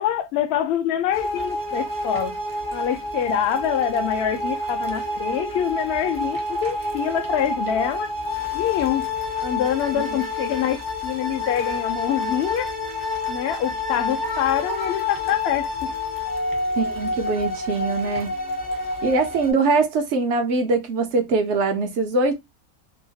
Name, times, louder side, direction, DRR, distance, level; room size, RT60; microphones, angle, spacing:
voice 1, 0.0-2.3 2.7-8.1 8.5-9.1 9.4-12.7 13.3-15.9, left 10 dB, 70° left, 0.6 m, -25 dB
sound 1, 1.1-19.5, left 2 dB, 25° right, 0.4 m, -28 dB
voice 2, 16.8-18.3 19.0-22.3, right 3 dB, 65° right, 0.7 m, -22 dB
2.8 x 2.2 x 2.7 m
omnidirectional pair, 1.6 m